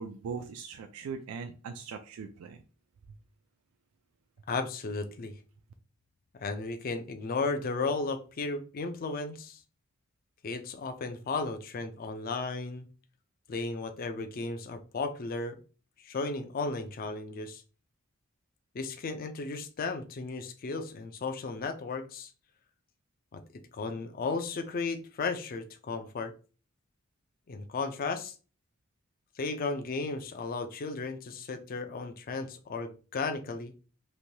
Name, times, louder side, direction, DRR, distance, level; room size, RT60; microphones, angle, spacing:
voice 1, 0.0-2.6, right 5 dB, 80° right, 6 dB, 0.3 m, -40 dB
voice 2, 4.5-5.3 6.4-9.6 10.4-12.9 13.5-15.6 16.0-17.6 18.7-22.3 23.3-23.4 23.7-26.3 27.5-28.3 29.4-33.7, left 3 dB, 40° left, 7 dB, 0.4 m, -34 dB
3.1 x 2.2 x 2.7 m, 0.36 s
head